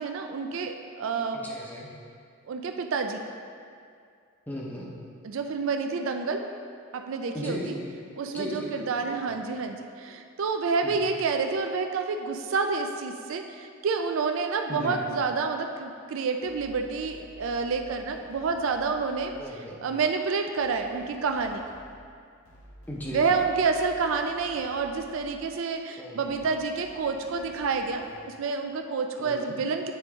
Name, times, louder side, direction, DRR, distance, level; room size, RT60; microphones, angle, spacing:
voice 1, 0.0-1.5 2.5-3.3 5.2-6.5 6.9-7.8 8.2-19.3 19.8-21.6 23.1-29.9, right 4 dB, 65° right, 5 dB, 0.4 m, -29 dB
voice 2, 1.3-1.9 4.5-4.9 7.3-7.9 8.3-9.1 10.8-10.9 14.7-15.0 19.3-19.8 22.9-23.2 26.0-26.3 29.2-29.5, left 1 dB, 10° left, -4 dB, 0.7 m, -36 dB
sound 1, 16.4-19.7 20.6-25.7 26.2-28.4, equal, 85° left, 1.0 m, -52 dB
9.1 x 3.7 x 3.6 m, 2.3 s
head